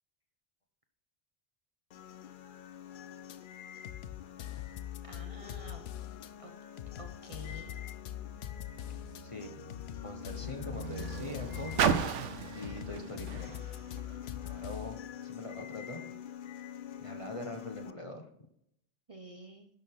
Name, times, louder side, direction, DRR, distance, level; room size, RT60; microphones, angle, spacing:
sound 1, 1.9-17.9, left 9 dB, 55° left, 0.6 m, -47 dB
sound 2, 3.3-3.4 3.8-6.3 6.8-9.2 9.7-12.2 12.6-15.0, left 12 dB, 80° left, 0.9 m, -43 dB
voice 1, 5.0-5.9 6.4-6.5 7.0-7.8 9.1-9.2 19.1-19.7, right 1 dB, 30° right, 3 dB, 1.0 m, -49 dB
Car, 8.2-14.8 15.6-15.7, right 7 dB, 90° right, 1.1 m, -36 dB
voice 2, 9.2-9.6 10.0-13.6 14.4-16.0 17.0-18.3, left 1 dB, 30° left, 4 dB, 1.1 m, -43 dB
11.0 x 6.5 x 3.7 m, 0.72 s
omnidirectional pair, 1.2 m